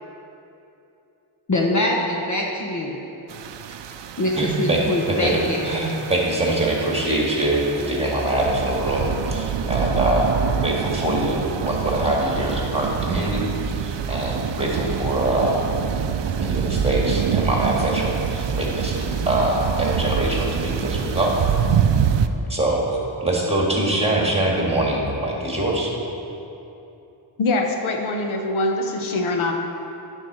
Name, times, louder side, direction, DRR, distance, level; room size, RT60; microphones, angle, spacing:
voice 1, 1.5-3.0 4.2-5.6, left 1 dB, 35° left, -1 dB, 0.9 m, -23 dB
sound 1, 3.3-22.3, right 7 dB, 65° right, 0.5 m, -26 dB
voice 2, 4.4-4.8 5.2-10.3 10.6-13.4 13.8-15.6 16.4-21.3 22.5-22.8 23.2-25.9, right 1 dB, 10° right, -3 dB, 2.0 m, -23 dB
voice 3, 27.4-29.5, left 2 dB, 75° left, 3 dB, 0.9 m, -23 dB
9.8 x 4.6 x 6.2 m, 2.9 s
cardioid pair, 75°, 48 cm